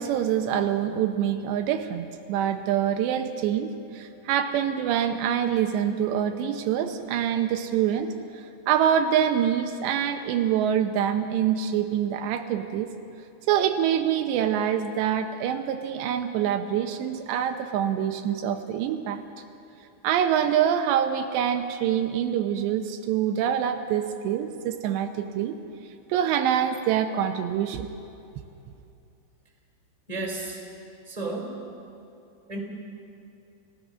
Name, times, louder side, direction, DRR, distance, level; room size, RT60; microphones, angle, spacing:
voice 1, 0.0-12.9 13.5-19.2 20.0-25.6 26.1-27.9, right 9 dB, 80° right, 6 dB, 3.0 m, -25 dB
voice 2, 30.1-30.6 31.1-31.6 32.5-32.6, right 2 dB, 10° right, 0 dB, 3.1 m, -32 dB
29.0 x 16.5 x 6.2 m, 2.7 s
omnidirectional pair, 5.0 m